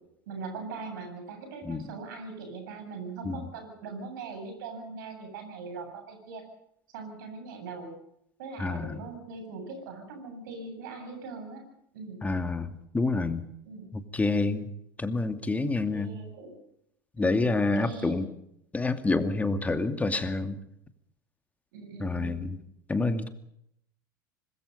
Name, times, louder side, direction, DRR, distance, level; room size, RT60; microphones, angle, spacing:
voice 1, 0.3-6.4 6.9-7.9 8.4-11.6 11.9-12.2 13.6-13.9 15.9-16.6 17.2-18.3 19.7-19.9 21.7-22.6, right 4 dB, 65° right, 6 dB, 8.0 m, -41 dB
voice 2, 8.6-9.0 12.2-13.5 13.9-14.7 15.0-16.1 17.2-18.3 18.7-20.6 22.0-22.6 22.9-23.3, left 3 dB, 10° left, 9 dB, 2.4 m, -28 dB
25.5 x 21.0 x 5.5 m, 0.75 s
figure-of-eight pair, 80°, 12 cm